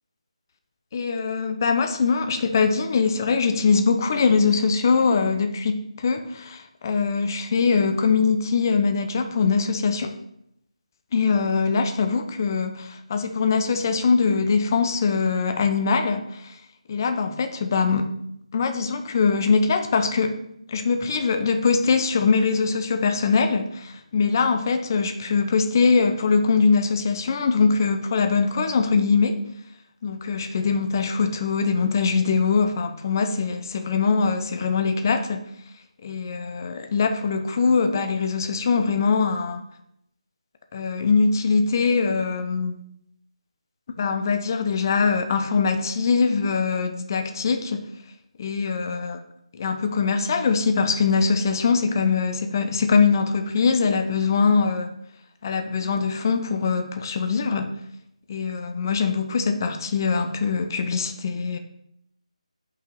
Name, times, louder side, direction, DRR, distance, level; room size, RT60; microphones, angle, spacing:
voice 1, 0.9-10.1 11.1-16.6 16.9-18.1 18.5-20.3 20.7-29.4 30.0-35.5 36.0-39.6 40.7-42.7 44.0-47.9 48.4-49.2 49.5-54.9 55.4-57.8 58.3-61.6, left 5 dB, 30° left, 7 dB, 0.9 m, -22 dB
5.7 x 5.7 x 6.6 m, 0.75 s
figure-of-eight pair, 160°, 4 cm